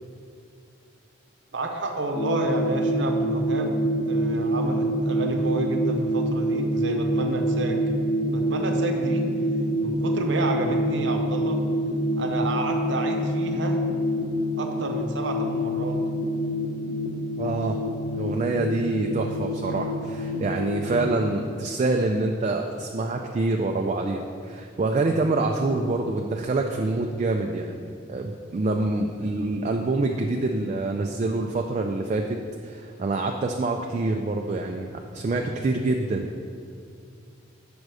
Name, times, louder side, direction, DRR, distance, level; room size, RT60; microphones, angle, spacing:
voice 1, 1.5-7.8 8.3-9.3 9.8-11.6 12.2-13.8 14.6-16.0, right 2 dB, 65° right, 3 dB, 0.7 m, -30 dB
sound 1, 2.1-21.1, equal, 55° left, 0.9 m, -26 dB
voice 2, 17.4-17.8 18.1-32.4 32.6-36.3, right 2 dB, 35° right, 3 dB, 0.3 m, -26 dB
6.6 x 5.1 x 4.8 m, 2.3 s
head